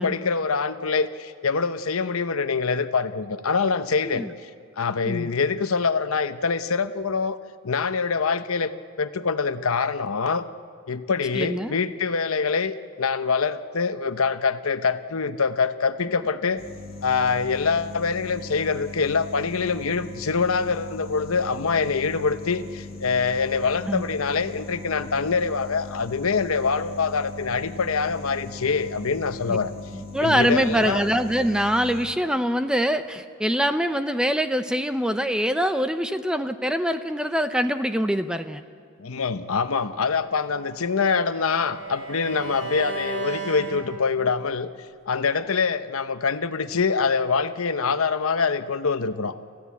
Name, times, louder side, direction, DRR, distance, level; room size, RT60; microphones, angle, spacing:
voice 1, 0.0-4.5 4.8-7.4 7.6-10.4 10.9-16.6 17.0-29.7 30.2-31.0 39.0-44.7 45.1-49.3, left 5 dB, 80° left, 11 dB, 0.8 m, -25 dB
voice 2, 11.3-11.8 23.9-24.0 29.5-29.6 29.9-38.6, equal, 5° right, 9 dB, 0.6 m, -24 dB
sound 1, 16.6-32.1, left 3 dB, 45° left, 2.3 m, -39 dB
Bowed string instrument, 40.3-44.5, right 3 dB, 85° right, 5.0 m, -35 dB
30.0 x 15.0 x 8.4 m, 2.2 s
head